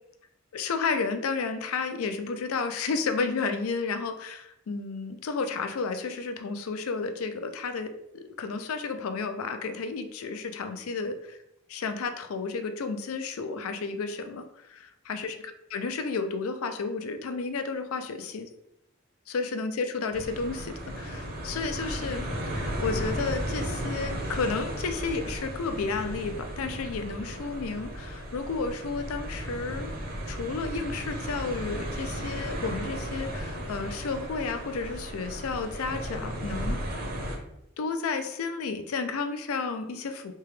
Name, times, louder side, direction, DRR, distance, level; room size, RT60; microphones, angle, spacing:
voice 1, 0.5-11.4 11.7-18.5 19.3-22.3 22.5-29.9 30.3-36.8 37.8-40.3, left 4 dB, 80° left, 8 dB, 0.4 m, -32 dB
sound 1, 20.1-37.4, equal, 45° right, 0.7 m, -35 dB
3.4 x 2.8 x 3.2 m, 0.83 s
head